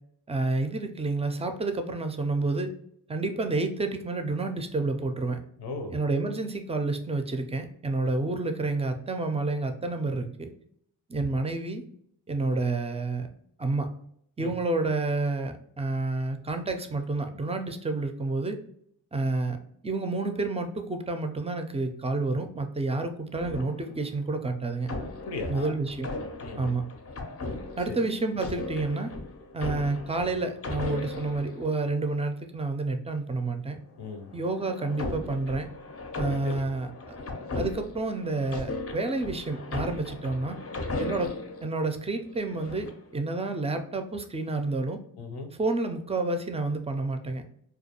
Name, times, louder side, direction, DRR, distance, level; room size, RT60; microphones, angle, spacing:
voice 1, 0.3-2.7 3.1-5.4 5.9-10.5 11.1-11.8 12.3-13.3 13.6-13.9 14.4-18.6 19.1-19.6 19.8-24.9 25.5-26.1 26.6-26.8 27.8-29.1 29.5-33.8 34.3-35.7 36.2-37.2 37.6-40.6 41.0-41.3 41.6-45.0 45.5-47.4, right 3 dB, 15° right, 6 dB, 0.4 m, -29 dB
voice 2, 5.6-5.9 14.4-14.5 25.3-25.7 26.4-26.7 27.9-28.0 34.0-34.3 36.4-36.6 45.2-45.5, left 3 dB, 75° left, 5 dB, 0.6 m, -36 dB
sound 1, 23.3-24.3 24.8-32.1 34.0-41.7 42.3-43.1, left 2 dB, 35° left, 0.5 m, -37 dB
2.3 x 2.2 x 2.8 m, 0.68 s
supercardioid pair, 40°, 41 cm